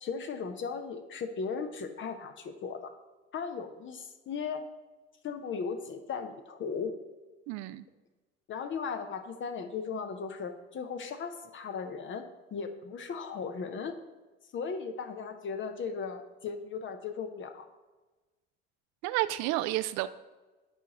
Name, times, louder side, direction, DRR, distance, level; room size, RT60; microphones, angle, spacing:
voice 1, 0.0-3.0 3.3-4.6 5.2-7.0 8.5-14.0 14.5-17.7, left 5 dB, 35° left, 0.7 m, -37 dB
voice 2, 7.5-7.9 19.0-20.1, right 16 dB, 55° right, 0.4 m, -30 dB
11.0 x 4.7 x 2.9 m
hypercardioid pair, 60°, 33 cm